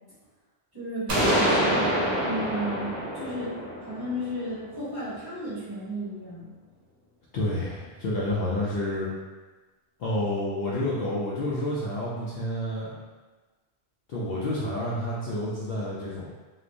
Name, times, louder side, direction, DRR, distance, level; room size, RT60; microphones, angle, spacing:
voice 1, 0.7-2.0 2.2-3.5 3.9-6.5, right 1 dB, 20° right, -11 dB, 1.1 m, -33 dB
sound 1, 1.1-4.9, equal, 65° right, 1.0 m, -26 dB
voice 2, 7.3-9.1 10.0-12.9 14.1-16.3, left 1 dB, 65° left, -7 dB, 0.7 m, -29 dB
3.0 x 2.1 x 2.5 m, 1.3 s
omnidirectional pair, 1.2 m